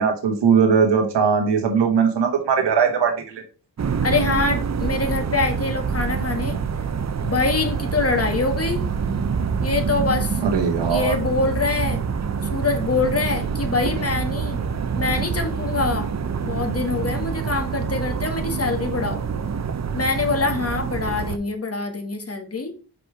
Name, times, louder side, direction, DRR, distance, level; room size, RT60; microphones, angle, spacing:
voice 1, 0.0-3.1 10.4-11.1, right 6 dB, 90° right, 4 dB, 1.2 m, -19 dB
sound 1, 3.8-21.4, right 6 dB, 40° right, 0.7 m, -26 dB
voice 2, 4.0-6.6 7.2-8.8 9.6-10.4 10.9-12.0 12.5-14.6 14.9-16.1 16.4-19.2 19.9-22.7, left 3 dB, 35° left, 5 dB, 1.6 m, -24 dB
5.0 x 4.2 x 4.5 m, 0.34 s
cardioid pair, 45°, 41 cm